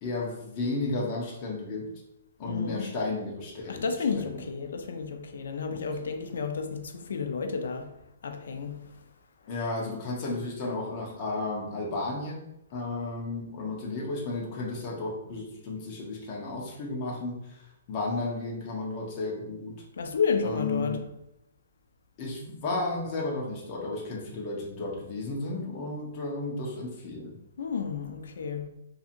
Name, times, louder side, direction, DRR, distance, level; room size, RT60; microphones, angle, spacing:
voice 1, 0.0-1.9 2.4-3.9 4.1-4.4 5.7-5.8 9.5-19.8 20.4-21.0 22.2-27.4, left 2 dB, 25° left, 0.6 m, -33 dB
voice 2, 2.4-2.9 3.7-9.0 19.9-21.1 27.6-28.7, left 5 dB, 70° left, 0.4 m, -32 dB
2.7 x 2.7 x 2.5 m
hypercardioid pair, 175°, 0 cm